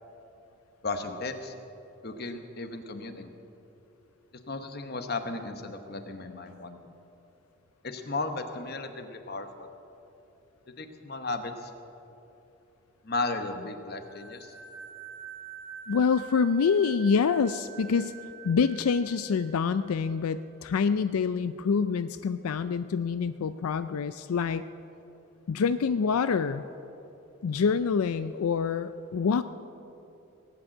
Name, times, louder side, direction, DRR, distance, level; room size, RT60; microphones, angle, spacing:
voice 1, 0.8-1.5 2.0-3.3 4.5-6.8 7.8-9.7 10.8-11.7 13.0-14.5, left 3 dB, 45° left, 7 dB, 1.0 m, -35 dB
sound 1, 14.0-20.5, right 8 dB, 75° left, 4.2 m, -46 dB
voice 2, 15.9-18.1 18.4-24.6 25.5-26.6 27.4-29.4, left 5 dB, 90° left, 12 dB, 0.4 m, -26 dB
18.5 x 9.0 x 7.7 m, 2.9 s
head